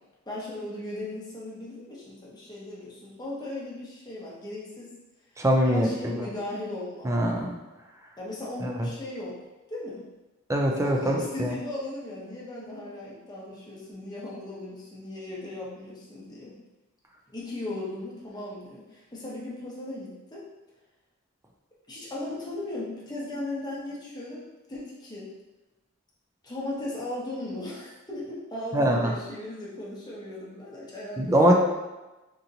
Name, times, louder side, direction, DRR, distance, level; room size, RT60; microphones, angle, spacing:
voice 1, 0.3-4.9 5.6-7.1 8.2-9.4 9.7-10.1 10.8-16.6 17.3-20.5 21.9-25.3 26.4-31.5, left 1 dB, 20° left, -6 dB, 0.9 m, -37 dB
voice 2, 5.4-6.3 7.0-7.5 8.6-8.9 10.5-11.5 28.7-29.1 31.2-31.5, equal, 15° right, 1 dB, 0.4 m, -23 dB
3.8 x 2.8 x 2.7 m, 1.1 s
head